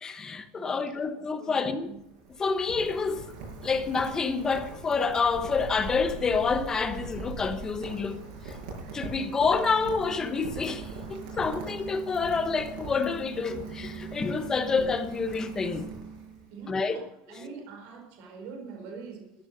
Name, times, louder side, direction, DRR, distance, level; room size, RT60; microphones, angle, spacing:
voice 1, 0.0-1.9 2.4-3.3 3.6-8.2 8.5-8.6 8.9-15.9 16.7-17.0, left 5 dB, 15° left, 1.0 m, -28 dB
voice 2, 0.5-1.9 11.1-11.2 16.5-19.3, right 5 dB, 55° right, 4.5 m, -44 dB
Rain, 1.7-16.5, right 4 dB, 70° right, 6.8 m, -40 dB
14.5 x 10.5 x 6.7 m
cardioid pair, 170°, 4 cm